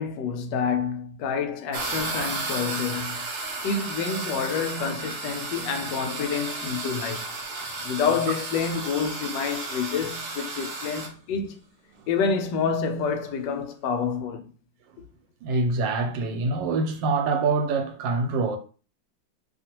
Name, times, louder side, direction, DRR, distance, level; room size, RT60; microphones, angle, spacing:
voice 1, 0.0-3.3 3.6-7.3 7.8-11.6 12.1-14.5, left 6 dB, 75° left, 1.2 m, -28 dB
sound 1, 1.7-11.1, right 3 dB, 65° right, 0.8 m, -33 dB
voice 2, 15.4-18.6, right 3 dB, 85° right, 1.3 m, -25 dB
2.9 x 2.5 x 2.8 m
omnidirectional pair, 2.0 m